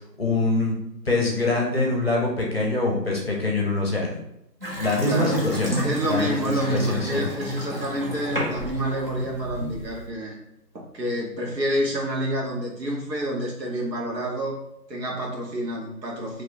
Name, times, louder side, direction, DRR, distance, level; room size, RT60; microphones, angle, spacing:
voice 1, 0.2-0.7 1.1-4.2 4.8-5.7 6.1-7.2, left 2 dB, 40° left, -2 dB, 0.7 m, -24 dB
Water tap faucet / Sink (filling or washing) / Bathtub (filling or washing), 4.6-10.1, equal, 35° right, 0.6 m, -31 dB
voice 2, 5.1-5.4 5.8-10.4 10.7-14.6 14.9-16.4, right 1 dB, 75° right, -2 dB, 1.2 m, -28 dB
2.8 x 2.2 x 4.0 m, 0.78 s
figure-of-eight pair, 160°, 50 cm